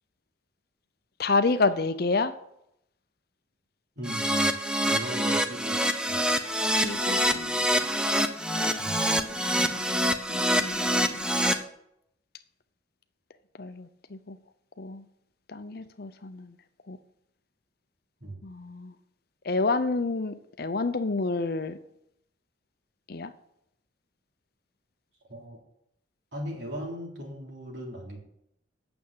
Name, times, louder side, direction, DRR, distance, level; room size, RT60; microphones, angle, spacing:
voice 1, 1.2-2.3 6.8-7.9 9.6-11.3 13.6-14.4 14.8-15.0 15.5-16.5 16.9-17.0 18.4-18.9 19.4-21.8 23.1-23.3, left 3 dB, 55° left, 0.7 m, -29 dB
Keyboard (musical), 4.0-11.5, equal, 5° right, 0.7 m, -26 dB
voice 2, 4.0-4.6 4.8-5.8 6.0-6.3 8.8-9.0 18.2-18.4 25.3-25.6 26.3-28.2, equal, 65° right, 3.6 m, -38 dB
9.0 x 7.0 x 8.4 m
head